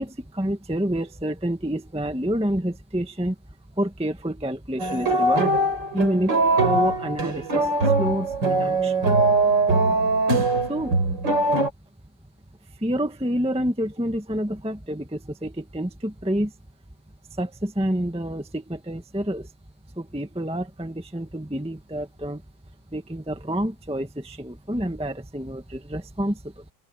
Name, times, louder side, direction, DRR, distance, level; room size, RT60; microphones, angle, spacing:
voice 1, 0.0-3.3 3.8-5.6 5.9-9.0 10.3-11.0 12.8-16.5 17.3-19.5 20.0-22.4 22.9-26.6, right 1 dB, 5° right, 1.4 m, -28 dB
sound 1, 4.8-11.7, right 2 dB, 85° right, 4.6 m, -21 dB
open air
omnidirectional pair, 1.9 m